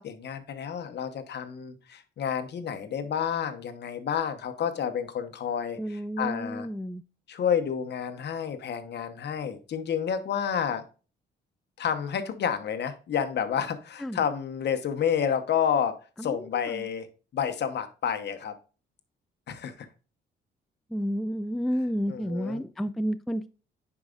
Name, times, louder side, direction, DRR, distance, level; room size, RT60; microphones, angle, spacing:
voice 1, 0.0-6.7 7.3-10.8 11.8-17.1 17.3-18.5 19.5-19.9 22.1-22.6, left 8 dB, 60° left, 1.0 m, -30 dB
voice 2, 5.8-7.0 14.0-14.2 16.2-16.9 20.9-23.5, equal, ahead, 0.3 m, -31 dB
10.0 x 4.8 x 2.4 m
cardioid pair, 90°, 20 cm